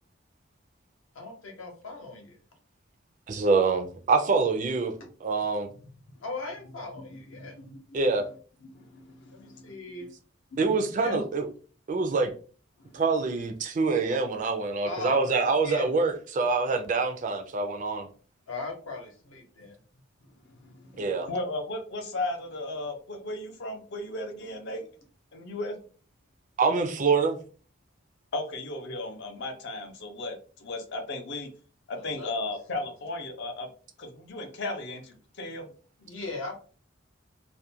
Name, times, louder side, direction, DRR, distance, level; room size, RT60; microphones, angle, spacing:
voice 1, 1.1-2.4 6.2-7.6 9.3-10.1 11.0-11.2 14.8-15.9 18.5-19.8 31.9-32.5 36.0-36.6, left 3 dB, 75° left, 1 dB, 0.8 m, -39 dB
voice 2, 3.3-4.9 5.2-5.7 7.9-8.2 10.6-11.5 11.9-12.3 12.9-18.1 21.0-21.3 26.6-27.4, right 4 dB, 40° right, 5 dB, 0.3 m, -25 dB
voice 3, 7.4-7.7 8.8-9.6 10.0-10.1 10.5-10.6 11.1-11.2 12.9-13.0 20.6-21.0 21.3-24.8 25.3-25.8 28.3-31.5 31.9-33.7 34.0-35.7, left 2 dB, 55° left, 5 dB, 0.5 m, -35 dB
2.4 x 2.1 x 2.7 m, 0.39 s
head